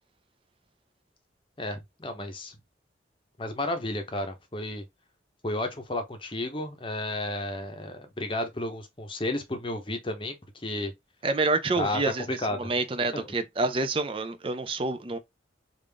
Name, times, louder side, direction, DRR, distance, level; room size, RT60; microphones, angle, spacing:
voice 1, 1.6-2.6 3.4-4.8 5.4-10.4 10.6-10.9 11.8-12.0 12.3-12.7 13.1-13.3, left 1 dB, 30° left, 0.7 m, -32 dB
voice 2, 11.2-15.2, right 3 dB, 30° right, 0.5 m, -28 dB
3.5 x 2.5 x 3.3 m
head